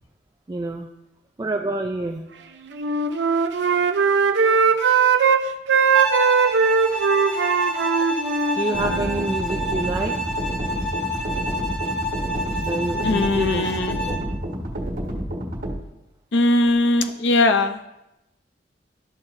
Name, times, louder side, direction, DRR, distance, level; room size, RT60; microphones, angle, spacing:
voice 1, 0.5-0.9 1.4-2.2 7.1-8.1 8.4-10.5 12.6-13.7 14.1-14.2, right 2 dB, 20° right, 2 dB, 0.4 m, -28 dB
Wind instrument woodwind instrument, 2.7-5.4 5.7-9.3, right 5 dB, 75° right, 0.6 m, -20 dB
Bowed string instrument, 5.9-14.3, equal, 5° left, 1.3 m, -29 dB
sound 1, 8.7-15.7, equal, 50° right, 1.5 m, -29 dB
voice 2, 13.0-14.3 16.3-17.9, left 2 dB, 75° left, 8 dB, 0.6 m, -20 dB
12.5 x 5.7 x 2.6 m, 0.91 s
head